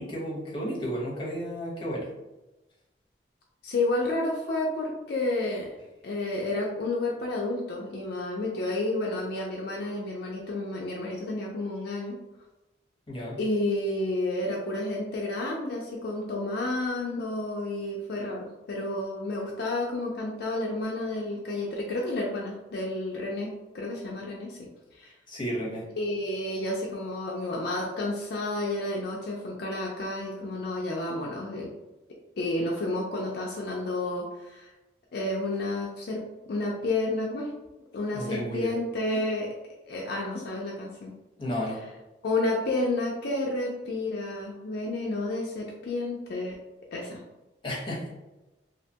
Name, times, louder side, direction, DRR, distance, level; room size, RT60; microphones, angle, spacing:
voice 1, 0.0-2.1 13.1-13.4 25.3-25.8 38.1-38.7 41.4-41.8 47.6-48.1, equal, 25° left, -5 dB, 0.8 m, -32 dB
voice 2, 3.6-5.7 6.0-12.2 13.4-25.1 26.0-31.7 32.4-34.7 35.1-37.5 37.9-39.5 39.8-41.1 42.2-46.6 46.9-47.2, left 2 dB, 60° left, -2 dB, 0.4 m, -30 dB
2.7 x 2.1 x 2.7 m, 1.0 s
head